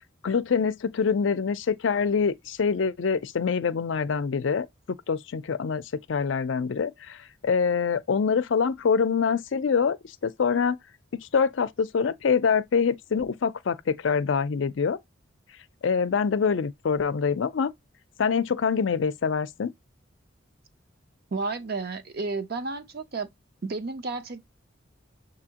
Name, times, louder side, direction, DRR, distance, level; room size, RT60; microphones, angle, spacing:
voice 1, 0.2-4.7 5.1-5.8 6.1-10.0 10.2-10.8 11.1-15.0 15.8-17.7 18.2-19.7, left 6 dB, 70° left, 0.4 m, -25 dB
voice 2, 21.3-23.3 23.6-24.4, right 3 dB, 55° right, 0.7 m, -32 dB
6.9 x 2.8 x 2.8 m
head